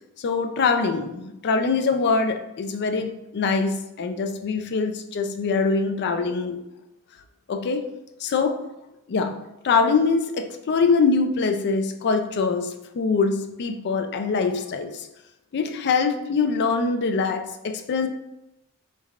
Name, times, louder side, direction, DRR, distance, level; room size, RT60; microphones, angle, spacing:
voice 1, 0.2-6.6 7.5-7.9 8.2-8.6 9.1-14.9 15.5-18.1, left 4 dB, 50° left, 6 dB, 0.4 m, -23 dB
4.2 x 3.3 x 2.4 m, 0.90 s
head